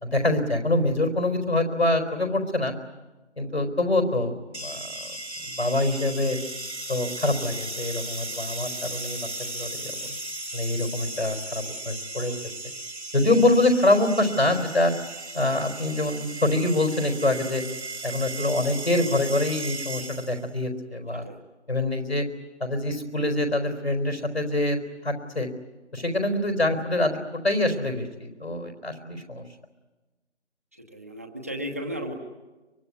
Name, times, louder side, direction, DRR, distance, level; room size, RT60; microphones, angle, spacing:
voice 1, 0.0-2.7 3.4-4.9 5.4-6.4 6.9-9.9 10.5-12.4 13.1-14.9 15.3-17.6 18.0-21.3 21.7-22.3 22.6-24.8 25.0-25.5 25.9-29.4, left 2 dB, 65° left, 6 dB, 4.5 m, -25 dB
sound 1, 4.5-20.5, right 2 dB, 70° right, 2.1 m, -36 dB
voice 2, 30.7-32.1, equal, 15° right, 2 dB, 0.9 m, -35 dB
23.5 x 23.5 x 9.6 m, 1.1 s
figure-of-eight pair, 160°, 35 cm